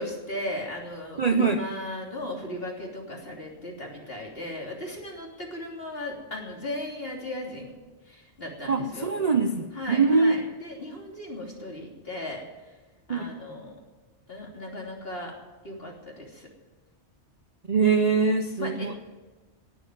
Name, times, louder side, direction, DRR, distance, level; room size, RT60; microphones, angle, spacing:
voice 1, 0.0-7.8 8.1-9.1 9.7-12.4 13.1-13.7 14.3-15.3 15.6-16.5 18.6-19.0, left 1 dB, 55° left, -1 dB, 3.4 m, -36 dB
voice 2, 1.2-1.6 8.7-10.5 13.1-13.3 17.7-19.0, right 4 dB, 40° right, 7 dB, 0.7 m, -23 dB
17.5 x 7.9 x 9.3 m, 1.2 s
omnidirectional pair, 1.2 m